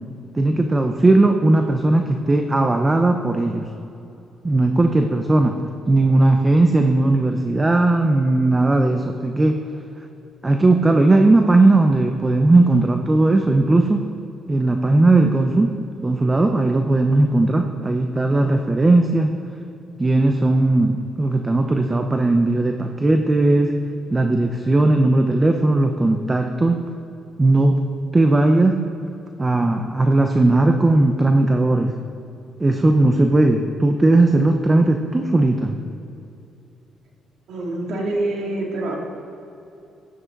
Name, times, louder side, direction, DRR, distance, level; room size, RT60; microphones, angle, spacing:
voice 1, 0.3-3.7 4.4-5.6 5.9-9.6 10.4-14.1 14.5-15.7 16.0-19.3 20.0-23.7 24.1-26.8 27.4-27.8 28.1-28.8 29.4-32.0 32.6-35.8, right 2 dB, 20° right, 5 dB, 0.8 m, -17 dB
voice 2, 37.5-38.9, right 2 dB, 75° right, -2 dB, 2.8 m, -25 dB
15.5 x 11.0 x 4.0 m, 2.7 s
cardioid pair, 90°, 0 cm